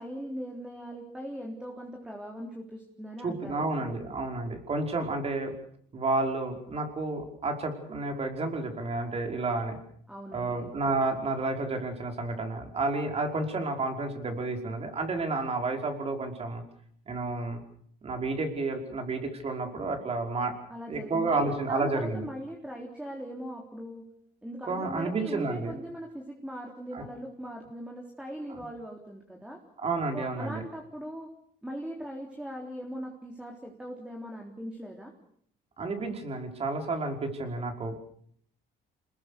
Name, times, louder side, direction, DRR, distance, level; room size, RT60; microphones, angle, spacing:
voice 1, 0.0-3.7 10.1-10.7 20.7-24.1 24.4-29.6 30.1-31.3 31.6-35.1, equal, 5° right, 1 dB, 3.7 m, -40 dB
voice 2, 3.2-5.5 5.9-9.8 10.3-16.6 17.1-17.6 18.0-20.6 20.9-22.3 24.7-25.7 26.9-27.1 29.8-30.6 35.8-38.0, right 3 dB, 35° right, 4 dB, 5.2 m, -31 dB
27.5 x 21.0 x 6.8 m, 0.64 s
cardioid pair, 110°, 17 cm